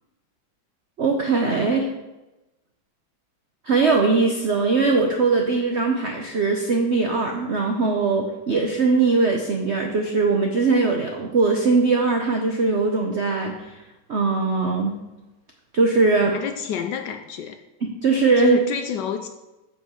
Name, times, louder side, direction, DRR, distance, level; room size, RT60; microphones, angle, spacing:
voice 1, 1.0-1.9 3.6-13.8 14.1-14.9 15.7-16.3 18.0-18.6, right 4 dB, 65° right, 0.6 m, -20 dB
voice 2, 16.2-17.6 18.4-19.3, left 7 dB, 70° left, 1.1 m, -29 dB
7.4 x 5.8 x 5.6 m
omnidirectional pair, 2.2 m